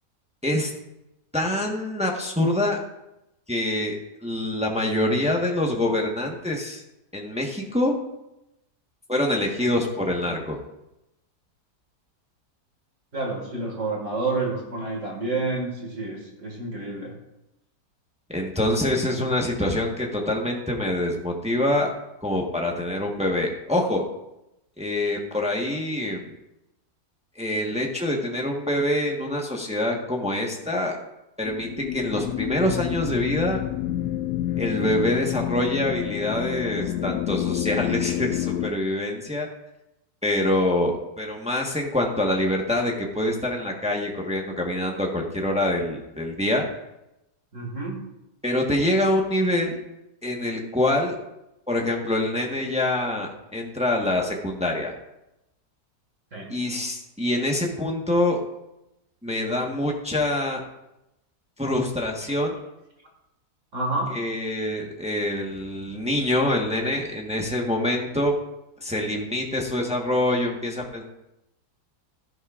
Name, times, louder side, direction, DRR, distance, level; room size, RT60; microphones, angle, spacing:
voice 1, 1.3-2.8 3.5-6.8 7.1-7.9 9.1-10.6 18.3-21.9 22.2-24.0 24.8-26.3 27.4-31.0 31.4-33.7 34.6-39.5 40.2-46.6 48.4-49.8 50.2-51.2 51.7-54.9 56.5-58.4 59.2-60.6 61.6-62.5 64.1-68.4 68.8-71.0, left 1 dB, 5° right, 0 dB, 1.0 m, -25 dB
voice 2, 13.1-17.1 47.5-48.0 56.3-56.5 63.7-64.1, right 3 dB, 55° right, 0 dB, 2.2 m, -29 dB
sound 1, 31.4-38.7, left 12 dB, 85° left, 1.1 m, -28 dB
12.5 x 11.0 x 2.5 m, 0.90 s
omnidirectional pair, 1.7 m